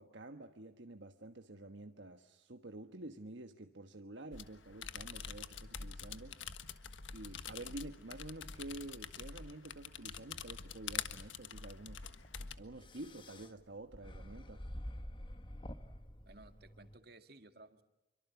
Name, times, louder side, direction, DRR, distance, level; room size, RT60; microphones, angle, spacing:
voice 1, 0.0-6.4 7.1-12.1 12.6-14.6, right 2 dB, 70° right, 6 dB, 1.3 m, -49 dB
sound 1, 4.3-12.6, left 7 dB, 80° left, 1.5 m, -46 dB
sound 2, 11.8-17.0, equal, 25° left, 1.3 m, -49 dB
voice 2, 16.3-17.8, right 2 dB, 55° right, 8 dB, 2.1 m, -57 dB
27.5 x 24.0 x 7.1 m, 0.98 s
head